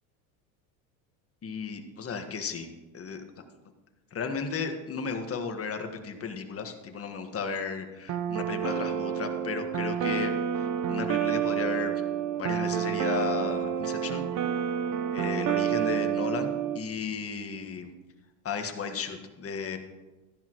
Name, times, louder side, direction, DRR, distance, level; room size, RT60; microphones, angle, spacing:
voice 1, 1.4-2.7 2.9-3.2 4.1-11.9 12.4-14.3 15.1-17.9 18.4-19.8, left 5 dB, 30° left, 6 dB, 1.6 m, -34 dB
sound 1, 8.1-16.8, right 9 dB, 45° right, 0.9 m, -29 dB
14.0 x 10.5 x 3.1 m, 1.1 s
hypercardioid pair, 90°, 43 cm